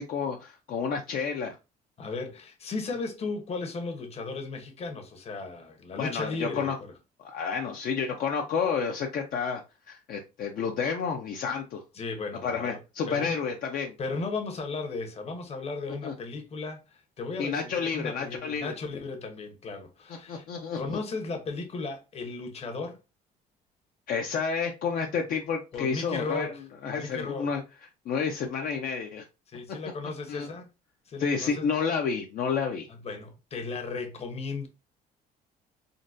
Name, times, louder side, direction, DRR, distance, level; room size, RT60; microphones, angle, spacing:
voice 1, 0.0-1.6 6.0-6.8 7.2-9.6 9.9-11.8 12.4-13.9 16.0-16.1 17.4-18.7 20.3-21.0 24.1-26.5 26.8-27.6 28.1-29.2 30.3-30.5 31.2-32.9, left 6 dB, 55° left, 0.5 m, -30 dB
voice 2, 2.0-6.9 11.9-12.8 13.0-13.4 14.0-20.4 20.7-23.0 25.7-26.6 26.9-27.5 29.5-30.7 31.1-31.7 32.9-34.7, left 3 dB, 40° left, 0.8 m, -35 dB
3.8 x 2.2 x 2.5 m
cardioid pair, 110°, 17 cm